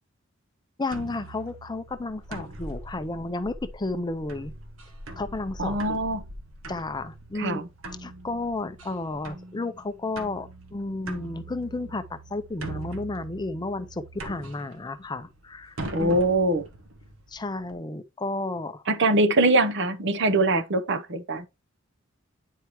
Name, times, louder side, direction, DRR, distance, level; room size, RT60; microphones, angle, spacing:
voice 1, 0.8-4.5 5.2-6.0 6.7-7.6 8.0-16.1 17.3-18.9, left 2 dB, 20° left, 0.5 m, -32 dB
sound 1, 0.9-17.7, right 2 dB, 85° right, 1.4 m, -42 dB
voice 2, 5.6-6.2 7.4-7.6 15.9-16.6 18.9-21.5, right 2 dB, 60° right, 0.8 m, -23 dB
9.7 x 4.6 x 3.0 m
head